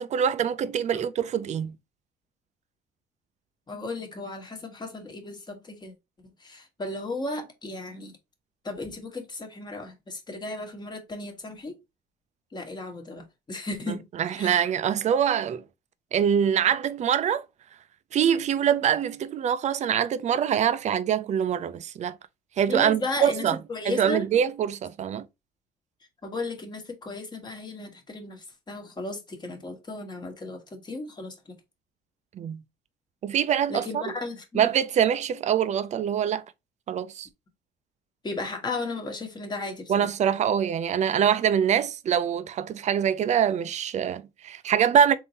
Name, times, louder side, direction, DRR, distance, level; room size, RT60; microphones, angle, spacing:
voice 1, 0.0-1.7 13.9-15.6 16.1-17.4 18.1-22.2 22.6-23.6 23.8-25.3 32.4-32.6 33.2-34.1 34.5-36.4 36.9-37.3 39.9-45.2, right 9 dB, 45° right, 0.5 m, -24 dB
voice 2, 3.7-5.9 6.4-8.2 8.6-11.7 12.5-14.0 14.3-14.7 22.7-24.3 26.2-31.4 33.7-34.7 38.2-40.4, left 2 dB, 25° left, 1.2 m, -35 dB
3.7 x 2.7 x 4.0 m
cardioid pair, 110°, 17 cm